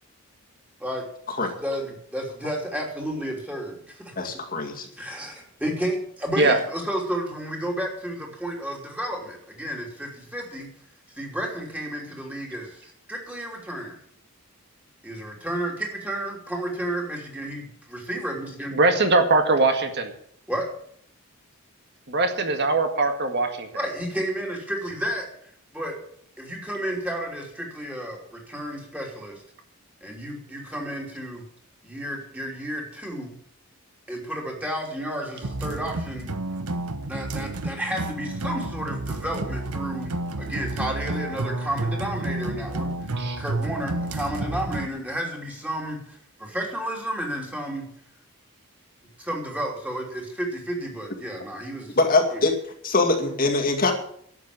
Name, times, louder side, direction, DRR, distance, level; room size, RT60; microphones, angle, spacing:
voice 1, 1.4-4.3 4.9-10.7 11.1-14.0 15.0-18.8 20.5-20.7 23.7-25.3 25.7-25.9 26.4-29.4 30.0-31.4 31.8-33.3 34.1-36.3 37.1-47.9 49.2-52.0 52.3-52.4, right 1 dB, 5° right, 0 dB, 3.2 m, -32 dB
voice 2, 4.2-4.9 52.0-52.5 52.8-53.9, left 3 dB, 40° left, 2 dB, 2.2 m, -22 dB
voice 3, 18.7-20.1 22.1-23.7 43.2-43.4, right 2 dB, 50° right, 5 dB, 2.0 m, -21 dB
sound 1, 35.4-44.9, right 2 dB, 90° right, 1.1 m, -30 dB
12.5 x 8.3 x 8.7 m, 0.64 s
head